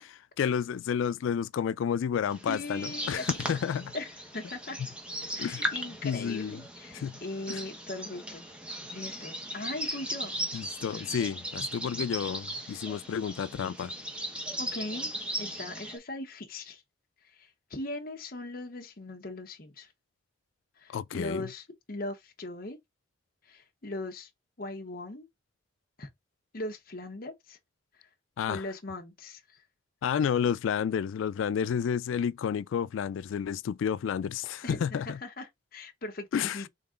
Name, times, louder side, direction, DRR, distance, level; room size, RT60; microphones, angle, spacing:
voice 1, 0.4-3.9 5.4-5.7 6.0-6.6 6.9-7.2 7.5-7.6 10.5-13.9 20.9-21.4 28.4-28.6 30.0-35.2 36.3-36.6, left 7 dB, 90° left, 0.3 m, -30 dB
sound 1, 2.3-16.0, right 1 dB, 5° right, 1.0 m, -37 dB
voice 2, 2.5-3.3 3.9-4.1 4.3-4.8 5.3-8.4 8.9-10.3 10.9-11.1 12.6-12.9 14.6-15.1 15.4-16.8 17.2-19.9 20.8-22.8 23.4-24.3 24.6-25.3 26.0-26.1 26.5-27.6 28.5-29.6 34.6-36.7, left 2 dB, 50° left, 1.0 m, -39 dB
3.9 x 3.8 x 3.6 m
head